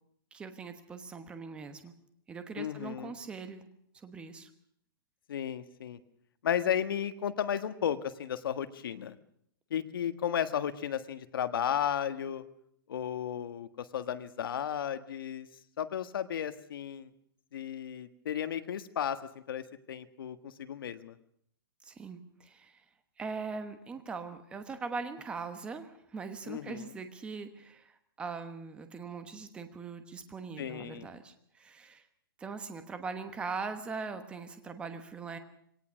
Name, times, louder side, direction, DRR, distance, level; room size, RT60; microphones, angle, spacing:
voice 1, 0.3-1.9 2.3-3.6 4.0-4.5 21.8-22.8 23.2-32.0 32.4-35.4, right 4 dB, 10° right, 9 dB, 1.1 m, -41 dB
voice 2, 2.6-3.1 5.3-6.0 6.4-9.1 9.7-12.4 12.9-15.5 15.8-17.1 17.5-19.2 19.5-21.2 26.4-26.9 30.6-31.1, left 9 dB, 70° left, 10 dB, 1.5 m, -34 dB
22.5 x 18.0 x 6.3 m, 0.68 s
hypercardioid pair, 170°, 12 cm